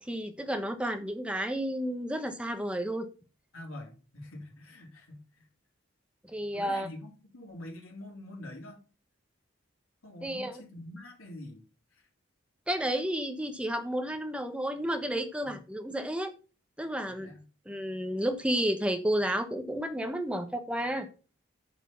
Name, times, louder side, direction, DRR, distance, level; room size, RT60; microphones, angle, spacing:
voice 1, 0.0-3.1 6.3-6.9 10.2-10.6 12.7-16.3 16.8-17.3 17.7-21.1, equal, 5° right, 1.1 m, -31 dB
voice 2, 3.5-5.5 6.5-8.8 10.0-11.6 11.9-12.0 15.4-15.6 17.1-17.5, left 1 dB, 85° left, 3.6 m, -45 dB
9.7 x 5.4 x 5.9 m
head